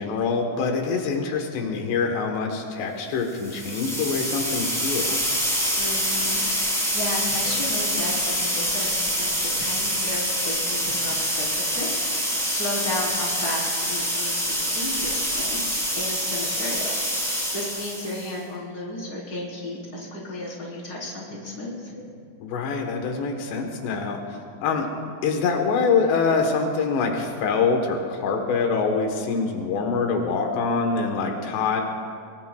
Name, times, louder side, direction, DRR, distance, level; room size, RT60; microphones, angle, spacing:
voice 1, 0.0-5.2 22.4-24.9 25.2-31.8, left 4 dB, 85° left, 3 dB, 3.4 m, -25 dB
sound 1, 3.4-18.3, equal, ahead, 4.7 m, -26 dB
voice 2, 5.8-14.4 14.7-15.6 16.0-16.9 17.5-21.9, left 1 dB, 25° left, -4 dB, 4.0 m, -34 dB
24.0 x 22.5 x 2.3 m, 2.3 s
omnidirectional pair, 4.8 m